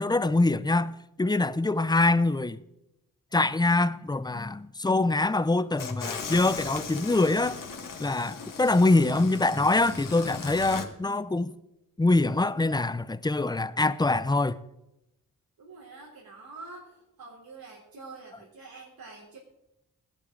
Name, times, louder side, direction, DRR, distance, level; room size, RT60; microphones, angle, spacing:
voice 1, 0.0-2.6 3.3-7.6 8.0-11.5 12.0-14.6, left 2 dB, 10° left, 0.6 m, -24 dB
sound 1, 5.8-10.9, left 5 dB, 65° left, 1.9 m, -38 dB
voice 2, 15.6-19.4, right 3 dB, 85° right, 3.6 m, -47 dB
17.0 x 11.5 x 3.8 m
cardioid pair, 80°, 34 cm